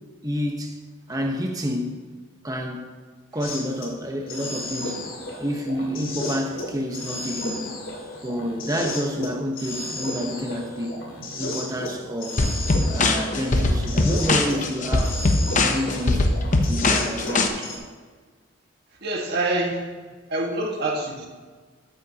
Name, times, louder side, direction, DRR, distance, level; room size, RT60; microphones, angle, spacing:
voice 1, 0.2-0.8 1.1-2.1 2.4-2.9 3.3-5.1 5.4-7.7 8.2-11.0 11.4-12.4 12.9-15.2 15.6-16.3 16.6-17.5, equal, 20° right, 2 dB, 1.1 m, -29 dB
sound 1, 3.4-3.9 4.2-14.7 14.9-17.8, left 1 dB, 90° left, 2.5 m, -33 dB
sound 2, 12.4-17.5, left 2 dB, 40° left, 0.8 m, -21 dB
voice 2, 19.0-19.8 20.3-21.3, right 2 dB, 55° right, -1 dB, 1.8 m, -26 dB
13.0 x 9.0 x 2.9 m, 1.5 s
head